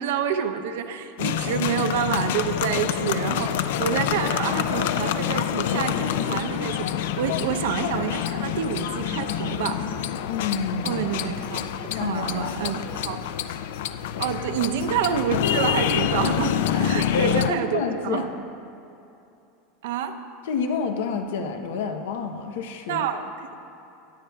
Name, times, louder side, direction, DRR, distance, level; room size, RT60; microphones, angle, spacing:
voice 1, 0.0-9.8 10.8-13.2 14.2-18.3 19.8-20.2 22.9-23.6, right 8 dB, 75° right, 6 dB, 0.6 m, -28 dB
sound 1, 1.2-17.5, left 10 dB, 70° left, 0.3 m, -27 dB
voice 2, 10.3-11.0 11.9-12.8 14.1-14.3 16.7-16.9 17.1-18.3 20.5-23.0, left 5 dB, 90° left, 6 dB, 0.7 m, -29 dB
19.5 x 8.5 x 2.3 m, 2.7 s
supercardioid pair, 175°, 0 cm